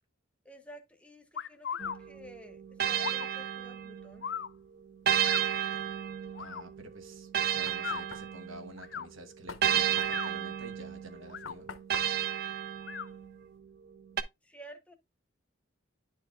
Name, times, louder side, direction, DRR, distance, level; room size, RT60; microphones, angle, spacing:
voice 1, 0.4-4.3 14.4-15.0, equal, 5° left, 0.9 m, -52 dB
sound 1, 1.3-2.0 3.0-3.3 4.2-4.5 5.2-5.4 6.3-6.6 7.7-8.0 8.8-9.1 9.9-10.3 11.2-11.6 12.8-13.1, left 7 dB, 60° left, 0.4 m, -38 dB
sound 2, 1.8-4.3 5.1-8.8 9.6-13.4 14.2-14.3, right 9 dB, 50° right, 0.5 m, -32 dB
voice 2, 6.4-11.7, right 1 dB, 80° right, 1.1 m, -49 dB
Knock, 7.1-13.6, left 5 dB, 80° left, 0.9 m, -49 dB
10.0 x 4.7 x 2.3 m
head